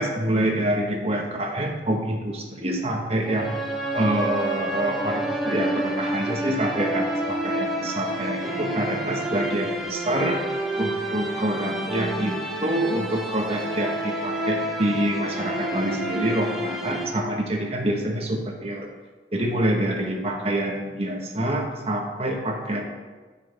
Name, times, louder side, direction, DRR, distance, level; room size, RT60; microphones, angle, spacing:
voice 1, 0.0-3.6 3.9-18.9 19.3-22.9, right 1 dB, 35° right, 1 dB, 1.4 m, -26 dB
sound 1, 3.2-17.0, right 1 dB, ahead, 1.3 m, -29 dB
13.5 x 6.0 x 3.5 m, 1.3 s
head